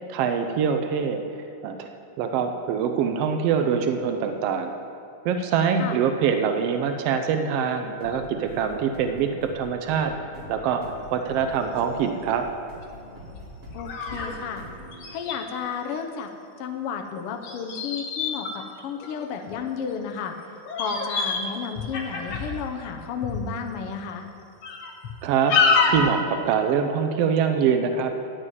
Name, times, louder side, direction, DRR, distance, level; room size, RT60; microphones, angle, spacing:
voice 1, 0.1-1.2 1.6-1.9 2.2-4.7 5.2-10.1 10.5-10.8 11.1-12.5 25.2-25.6 25.9-28.1, right 7 dB, 85° right, 6 dB, 1.3 m, -24 dB
sound 1, 8.0-15.6, equal, 30° right, 2.4 m, -44 dB
sound 2, 11.0-11.1 11.6-11.8 12.4-12.5 13.3-14.3 14.6-14.7 14.9-15.4 17.4-19.5 20.2-20.4 20.6-21.5 21.7-22.6 23.2-23.4 24.0-24.1 24.6-25.1 25.5-26.1, left 5 dB, 60° left, 1.6 m, -26 dB
voice 2, 13.7-14.7 15.1-16.3 16.6-20.4 20.8-24.3, left 7 dB, 85° left, 4 dB, 1.2 m, -32 dB
11.0 x 6.4 x 9.2 m, 2.6 s
omnidirectional pair, 3.6 m